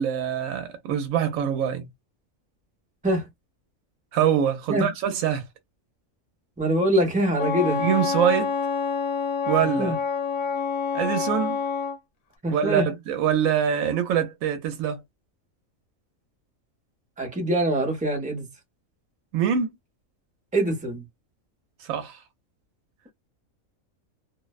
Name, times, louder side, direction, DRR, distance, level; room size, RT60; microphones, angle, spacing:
voice 1, 0.0-1.9 4.1-5.4 7.8-8.5 9.5-9.9 10.9-11.6 12.5-15.0 19.3-19.7 21.8-22.2, right 9 dB, 75° right, 1.0 m, -24 dB
voice 2, 6.6-7.8 9.8-9.9 12.4-12.9 17.2-18.5 20.5-21.0, right 1 dB, 10° right, 0.4 m, -24 dB
Wind instrument woodwind instrument, 7.4-12.0, left 5 dB, 85° left, 1.0 m, -27 dB
2.5 x 2.0 x 2.3 m
omnidirectional pair, 1.4 m